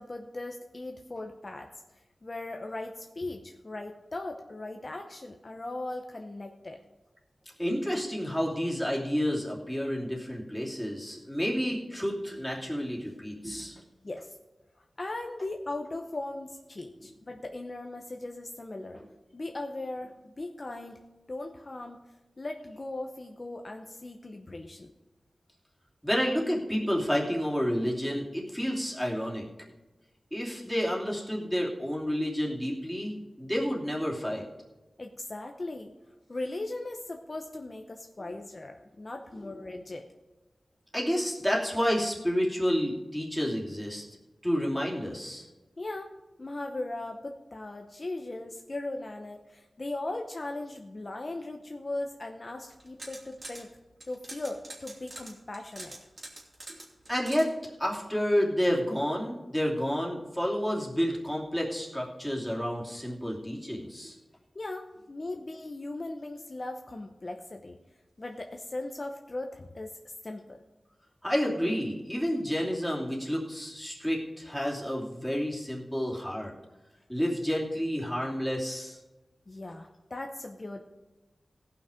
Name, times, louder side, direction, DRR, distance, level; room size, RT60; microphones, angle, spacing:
voice 1, 0.0-1.7 2.2-6.8 14.0-14.4 15.0-19.0 19.3-21.0 21.3-22.0 22.4-24.9 35.0-35.9 36.3-40.1 45.8-53.7 54.1-56.0 64.5-67.8 68.2-70.6 79.5-80.8, left 2 dB, 40° left, 4 dB, 0.8 m, -38 dB
voice 2, 7.6-13.8 18.9-19.0 26.0-29.5 30.3-34.4 40.9-44.0 44.4-45.5 57.1-57.5 57.8-64.2 71.2-76.5 77.1-79.0, equal, ahead, -3 dB, 2.7 m, -30 dB
sound 1, 52.7-53.6 54.0-57.5, right 2 dB, 50° right, 3.0 m, -44 dB
17.0 x 5.9 x 5.0 m, 1.1 s
wide cardioid pair, 70°, 0 cm